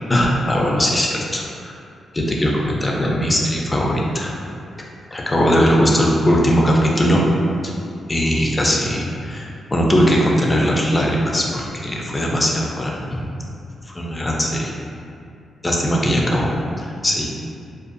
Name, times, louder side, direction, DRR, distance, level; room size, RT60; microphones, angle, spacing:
voice 1, 0.1-1.7 2.1-4.3 5.1-7.2 8.1-13.3 13.9-14.7 15.6-17.3, equal, 25° left, -2 dB, 0.4 m, -19 dB
2.5 x 2.3 x 2.5 m, 2.5 s
cardioid pair, 75°, 0 cm